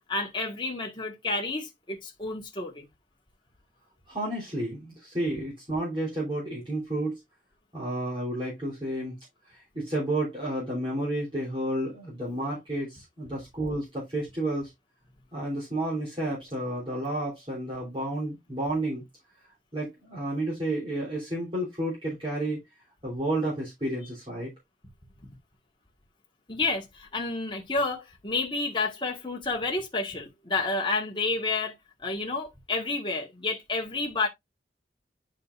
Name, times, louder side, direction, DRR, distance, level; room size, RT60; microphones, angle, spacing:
voice 1, 0.1-2.9 26.5-34.3, left 3 dB, 25° left, 1.6 m, -30 dB
voice 2, 4.1-7.2 7.7-9.2 9.5-14.7 15.3-19.0 19.7-22.6 23.0-24.5, right 1 dB, 30° right, 3.2 m, -31 dB
9.8 x 5.1 x 2.5 m
head